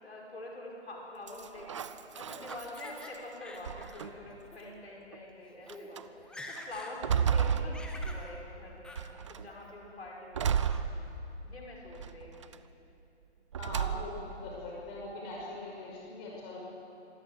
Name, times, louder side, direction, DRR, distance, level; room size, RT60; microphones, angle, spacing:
voice 1, 0.0-1.9 2.2-10.8 11.4-12.6, left 2 dB, 65° left, -2 dB, 5.4 m, -46 dB
sound 1, 1.3-3.2 3.6-4.4 5.1-5.2 5.7-6.0 6.6-8.5 9.0-9.5 10.3-11.5 12.0-12.6 13.5-14.3, right 7 dB, 25° right, 0.6 m, -33 dB
Laughter, 1.5-3.1 3.4-4.1 4.4-4.6 5.3-5.4 5.6-5.9 6.2-7.0 7.3-8.2 8.8-9.0 9.5-9.9 10.4-10.8, left 2 dB, ahead, 0.9 m, -48 dB
voice 2, 13.6-16.6, left 2 dB, 25° left, -3 dB, 5.9 m, -41 dB
26.0 x 15.0 x 9.2 m, 2.8 s
figure-of-eight pair, 135°, 35 cm